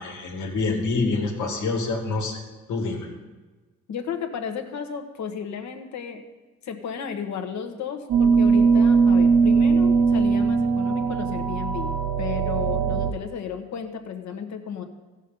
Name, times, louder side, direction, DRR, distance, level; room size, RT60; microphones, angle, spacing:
voice 1, 0.0-2.4 2.7-3.1, left 3 dB, 85° left, 1 dB, 2.1 m, -26 dB
voice 2, 3.9-6.2 6.6-14.8, left 7 dB, 65° left, 6 dB, 1.3 m, -33 dB
sound 1, 8.1-13.1, right 5 dB, 65° right, 1.0 m, -20 dB
15.5 x 6.4 x 5.3 m, 1.2 s
cardioid pair, 90°, 30 cm